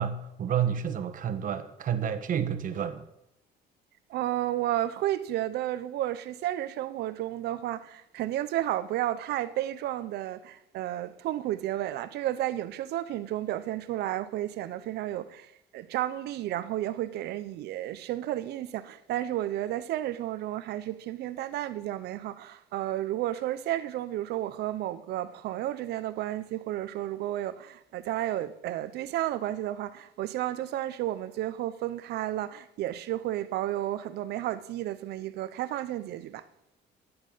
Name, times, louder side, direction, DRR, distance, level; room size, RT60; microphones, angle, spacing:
voice 1, 0.0-3.0, right 8 dB, 55° right, 1.3 m, -30 dB
voice 2, 4.1-36.4, right 13 dB, 75° right, 0.8 m, -32 dB
12.0 x 9.8 x 5.7 m
cardioid pair, 110°, 17 cm